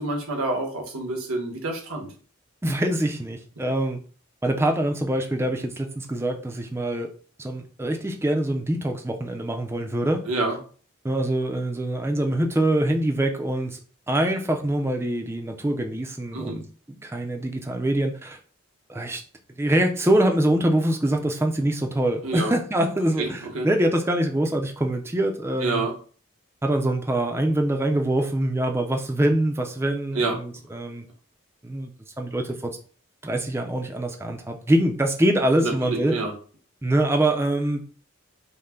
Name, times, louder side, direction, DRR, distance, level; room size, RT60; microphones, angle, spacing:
voice 1, 0.0-2.1 10.3-10.6 16.3-16.6 22.2-22.5 23.2-23.7 25.6-25.9 30.1-30.4 35.6-36.3, right 2 dB, 85° right, 1 dB, 1.2 m, -27 dB
voice 2, 2.6-4.0 4.4-7.1 7.4-10.2 11.0-13.8 14.1-16.6 17.0-18.4 18.9-19.2 19.6-25.9 26.6-31.1 31.6-31.9 32.2-32.8 33.2-36.2 36.8-37.8, right 1 dB, 10° right, 4 dB, 0.4 m, -24 dB
5.4 x 2.1 x 3.7 m, 0.41 s
head